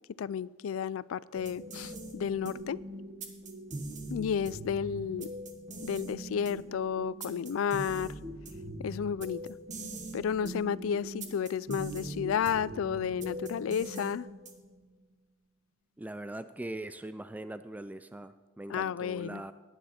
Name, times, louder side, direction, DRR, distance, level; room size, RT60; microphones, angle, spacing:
voice 1, 0.2-2.8 4.1-5.3 5.8-8.1 8.8-9.6 10.1-14.3 18.7-19.4, left 7 dB, 80° left, 0.3 m, -32 dB
sound 1, 1.3-14.8, right 1 dB, 40° right, 1.3 m, -42 dB
voice 2, 16.0-19.5, right 1 dB, 10° right, 0.3 m, -41 dB
17.0 x 10.0 x 4.3 m
head